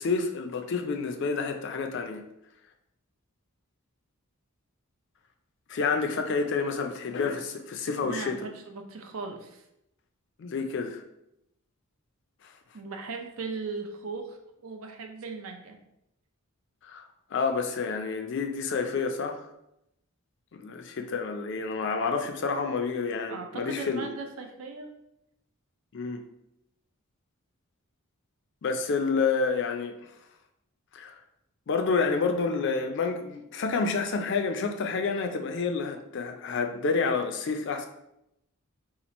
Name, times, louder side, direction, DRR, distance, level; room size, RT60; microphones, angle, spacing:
voice 1, 0.0-2.2 5.7-8.4 10.4-11.0 16.8-19.5 20.5-24.1 25.9-26.2 28.6-30.1 30.9-31.2 31.7-37.9, left 4 dB, 55° left, 5 dB, 0.4 m, -29 dB
voice 2, 8.0-9.6 12.7-15.8 23.3-24.9, right 4 dB, 70° right, 4 dB, 0.5 m, -38 dB
2.9 x 2.4 x 4.0 m, 0.83 s
head